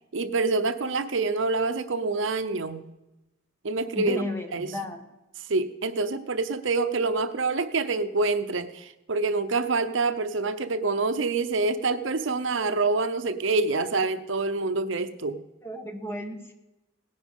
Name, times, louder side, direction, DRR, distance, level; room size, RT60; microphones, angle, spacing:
voice 1, 0.1-2.9 3.6-4.2 4.5-4.7 5.5-15.4, right 3 dB, 65° right, 11 dB, 0.7 m, -26 dB
voice 2, 3.9-5.1 15.6-16.5, left 1 dB, 10° left, 5 dB, 1.4 m, -33 dB
18.0 x 10.5 x 5.4 m, 0.98 s
head